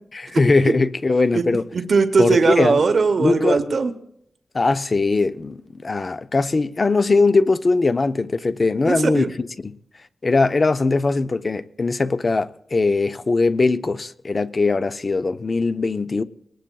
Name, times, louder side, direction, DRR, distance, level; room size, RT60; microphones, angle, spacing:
voice 1, 0.1-1.6 2.2-2.8 3.2-3.6 4.5-9.8 10.2-16.2, left 3 dB, 35° left, 0.4 m, -20 dB
voice 2, 1.7-3.9 8.8-9.3, right 4 dB, 60° right, 0.8 m, -19 dB
22.5 x 19.0 x 2.3 m
wide cardioid pair, 120°, 0 cm